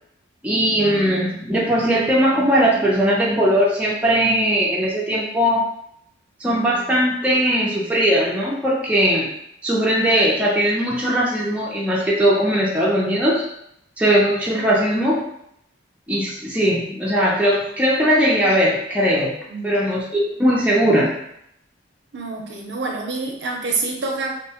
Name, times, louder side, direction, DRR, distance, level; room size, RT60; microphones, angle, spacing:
voice 1, 0.4-5.7 6.4-9.3 9.6-13.4 14.0-15.2 16.1-19.3 19.6-21.1, equal, 5° right, -5 dB, 0.4 m, -19 dB
voice 2, 22.1-24.3, right 3 dB, 60° right, 1 dB, 0.5 m, -27 dB
2.6 x 2.1 x 2.8 m, 0.74 s
head